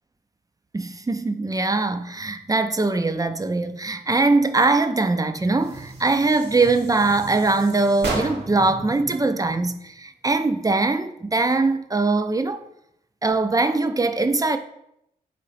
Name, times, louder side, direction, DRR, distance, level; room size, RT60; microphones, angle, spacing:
voice 1, 0.7-12.6 13.2-14.6, right 3 dB, 20° right, 0.4 m, -22 dB
sound 1, 5.6-8.7, right 2 dB, 80° right, 0.9 m, -34 dB
3.9 x 3.1 x 3.9 m
cardioid pair, 45°, 17 cm